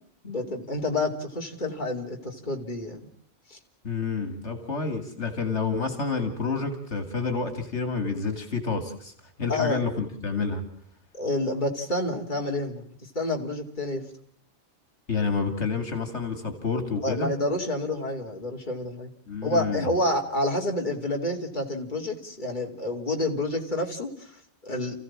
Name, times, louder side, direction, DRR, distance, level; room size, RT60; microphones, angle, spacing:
voice 1, 0.2-3.1 3.5-3.6 9.5-9.8 11.1-12.8 13.1-14.0 17.0-19.1 19.4-25.0, left 1 dB, 40° left, 0 dB, 3.2 m, -29 dB
voice 2, 3.8-9.1 9.4-10.6 15.1-17.3 19.3-19.9, left 4 dB, 75° left, 8 dB, 2.8 m, -29 dB
29.5 x 16.0 x 7.4 m, 0.63 s
omnidirectional pair, 1.2 m